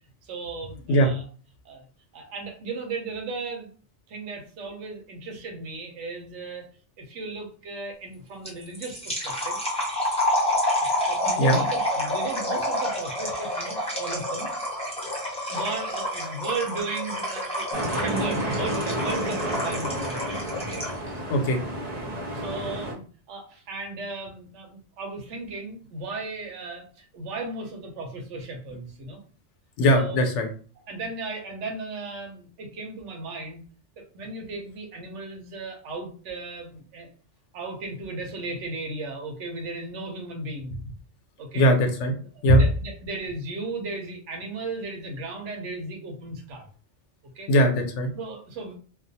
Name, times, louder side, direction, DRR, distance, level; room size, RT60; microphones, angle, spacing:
voice 1, 0.2-1.2 1.6-1.8 2.1-3.7 4.1-6.7 7.0-9.6 10.8-14.5 15.3-20.8 22.3-29.2 29.9-30.3 30.9-33.6 34.0-37.1 37.5-40.8 41.4-41.6 42.5-46.7 47.3-47.5 48.1-48.8, right 3 dB, 85° right, 3 dB, 1.0 m, -36 dB
sound 1, 8.5-21.1, left 1 dB, 5° left, 0.6 m, -28 dB
sound 2, 17.7-22.9, right 1 dB, 45° right, 0.6 m, -31 dB
voice 2, 21.3-21.6 29.8-30.5 41.5-42.1 42.4-42.6 47.5-48.1, equal, 80° left, 5 dB, 0.9 m, -20 dB
2.4 x 2.1 x 2.7 m, 0.41 s
omnidirectional pair, 1.2 m